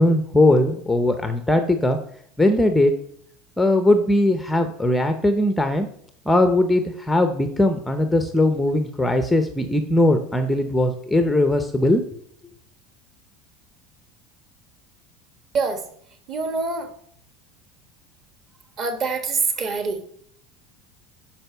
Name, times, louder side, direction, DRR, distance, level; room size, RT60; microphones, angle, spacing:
voice 1, 0.0-2.0 2.4-2.9 3.6-5.9 6.3-12.0, left 1 dB, 5° left, 7 dB, 0.7 m, -19 dB
voice 2, 16.3-16.9 18.8-20.1, right 4 dB, 30° right, 7 dB, 1.5 m, -25 dB
9.1 x 6.0 x 6.7 m, 0.65 s
cardioid pair, 170°, 0 cm